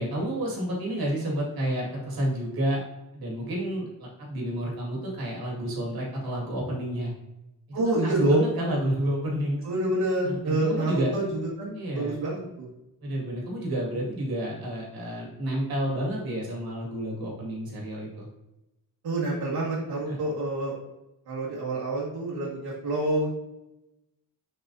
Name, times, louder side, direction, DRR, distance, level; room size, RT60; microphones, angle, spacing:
voice 1, 0.0-2.8 3.1-7.1 7.7-9.6 10.2-11.1 11.8-12.2 13.0-18.3 20.1-20.2, right 1 dB, 70° right, -3 dB, 2.1 m, -30 dB
voice 2, 7.7-8.5 9.6-11.3 11.6-12.7 19.0-20.7 21.3-23.3, right 1 dB, 85° right, -6 dB, 1.9 m, -27 dB
6.7 x 5.4 x 2.7 m, 0.93 s
wide cardioid pair, 155°, 38 cm